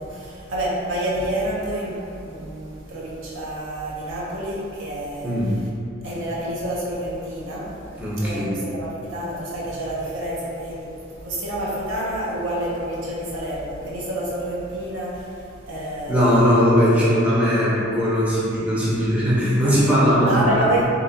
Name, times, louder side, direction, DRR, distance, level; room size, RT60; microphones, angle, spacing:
voice 1, 0.0-5.3 6.0-7.7 8.2-10.9 11.2-16.4 20.3-20.9, right 1 dB, 70° right, -6 dB, 0.7 m, -28 dB
voice 2, 5.2-5.6 8.0-8.6 16.1-20.6, equal, 5° right, -9 dB, 0.5 m, -19 dB
3.8 x 2.8 x 2.2 m, 2.6 s
head